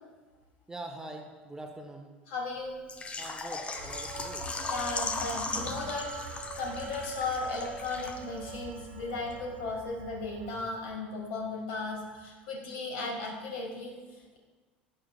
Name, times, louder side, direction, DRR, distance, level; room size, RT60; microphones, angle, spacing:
voice 1, 0.7-2.2 3.2-4.5, right 2 dB, 10° right, 3 dB, 0.8 m, -44 dB
voice 2, 2.3-2.8 4.7-14.4, left 3 dB, 55° left, 0 dB, 1.9 m, -36 dB
Water / Liquid, 2.9-8.5 8.8-8.9 9.3-9.4, left 3 dB, 20° left, 0.8 m, -37 dB
sound 1, 3.7-10.7, right 4 dB, 65° right, 0.9 m, -44 dB
11.5 x 8.8 x 2.3 m, 1.3 s
figure-of-eight pair, 70°, 5 cm